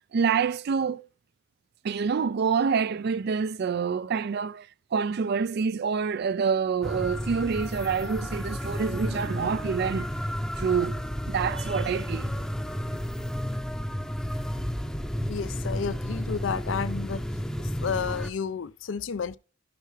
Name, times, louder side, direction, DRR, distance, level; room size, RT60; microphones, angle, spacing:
voice 1, 0.1-1.1 1.8-10.1 10.6-11.0 11.3-12.4, right 6 dB, 55° right, 0.4 m, -27 dB
sound 1, 6.8-18.3, equal, 5° left, 0.7 m, -32 dB
voice 2, 15.3-17.2 17.6-19.4, left 6 dB, 70° left, 0.5 m, -31 dB
15.0 x 5.7 x 3.2 m
head